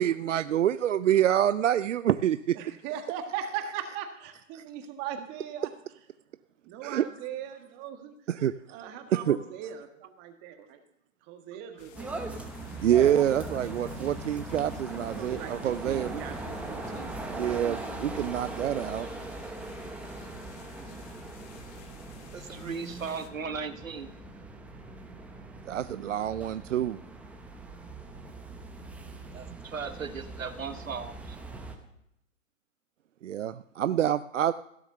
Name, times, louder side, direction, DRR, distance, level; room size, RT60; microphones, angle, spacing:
voice 1, 0.0-2.4 6.8-7.1 8.3-8.5 9.1-9.4 12.8-16.2 17.3-19.1 25.7-27.0 33.2-34.5, right 11 dB, 70° right, 0.5 m, -26 dB
voice 2, 2.5-5.7 6.6-10.8 11.3-12.1 15.1-17.1, right 9 dB, 25° right, 1.6 m, -39 dB
sound 1, 11.8-23.3, left 8 dB, 30° left, 1.2 m, -53 dB
sound 2, 11.9-31.8, right 2 dB, 5° right, 0.9 m, -40 dB
voice 3, 22.3-24.1 29.3-31.4, right 5 dB, 90° right, 1.1 m, -37 dB
16.0 x 7.0 x 6.7 m
hypercardioid pair, 130°, 39 cm